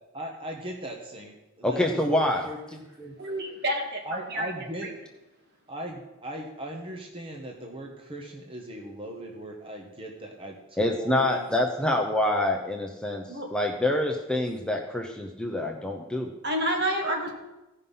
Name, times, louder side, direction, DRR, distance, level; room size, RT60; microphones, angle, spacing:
voice 1, 0.1-3.1 4.0-4.9 5.7-11.5, right 1 dB, 25° right, 1 dB, 1.2 m, -39 dB
voice 2, 1.6-2.4 10.8-13.2 13.5-16.3, left 1 dB, 5° left, 1 dB, 0.7 m, -26 dB
voice 3, 3.2-4.0 4.3-4.5 13.3-13.5 16.4-17.3, right 1 dB, 55° right, 1 dB, 2.2 m, -28 dB
15.5 x 5.5 x 5.6 m, 1.0 s
head